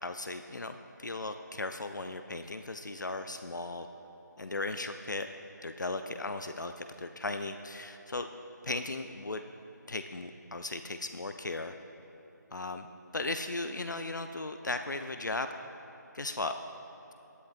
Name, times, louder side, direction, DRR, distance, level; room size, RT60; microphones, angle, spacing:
voice 1, 0.0-3.9 4.4-5.3 5.6-8.3 8.6-9.4 9.9-11.7 12.5-12.9 13.1-15.5 16.1-16.5, left 2 dB, 70° left, 8 dB, 0.5 m, -36 dB
17.5 x 11.5 x 2.4 m, 2.9 s
figure-of-eight pair, 160°, 10 cm